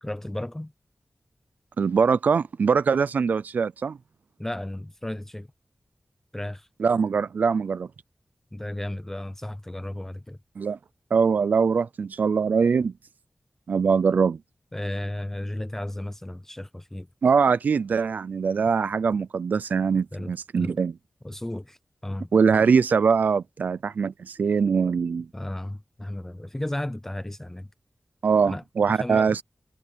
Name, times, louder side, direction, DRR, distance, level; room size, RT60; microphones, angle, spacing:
voice 1, 0.0-0.7 4.4-5.5 6.3-6.7 8.5-10.4 14.7-17.1 20.1-20.8 21.2-22.3 25.3-27.7 28.4-29.3, left 1 dB, 15° left, 0.6 m, -34 dB
voice 2, 1.8-4.0 6.8-7.9 10.6-10.8 11.1-12.9 13.7-14.4 17.2-20.9 22.3-25.3 28.2-29.4, right 5 dB, 85° right, 0.4 m, -22 dB
wide cardioid pair, 90°, 3 cm